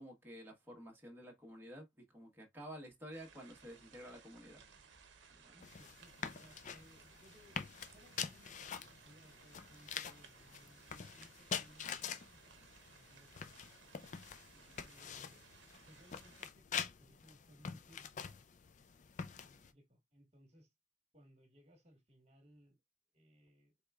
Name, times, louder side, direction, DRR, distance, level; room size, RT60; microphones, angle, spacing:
voice 1, 0.0-4.6 5.3-5.5 14.5-14.8 19.2-19.5, equal, 10° right, 1.1 m, -52 dB
sound 1, 3.1-16.5, right 6 dB, 60° right, 0.8 m, -62 dB
voice 2, 5.3-7.6 7.9-14.1 14.8-15.5 15.8-18.4 19.3-20.7 21.1-22.8 23.1-23.7, equal, 35° right, 1.5 m, -65 dB
sound 2, 5.6-19.7, left 7 dB, 40° left, 0.4 m, -46 dB
4.7 x 3.3 x 2.3 m
head